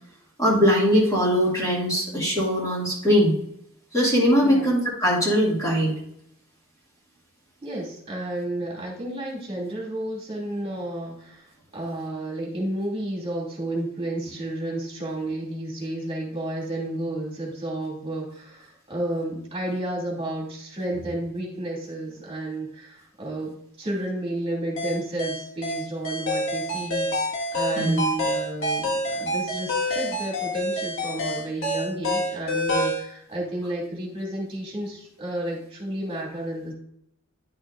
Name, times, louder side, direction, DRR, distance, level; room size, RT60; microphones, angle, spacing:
voice 1, 0.4-3.4 3.9-5.9 27.8-28.0, equal, 15° left, -6 dB, 2.2 m, -21 dB
voice 2, 4.4-4.7 7.6-27.1 27.5-36.7, right 1 dB, 25° right, -3 dB, 2.6 m, -31 dB
sound 1, 24.8-33.1, equal, 60° left, 1.8 m, -27 dB
10.5 x 6.1 x 2.6 m, 0.73 s
head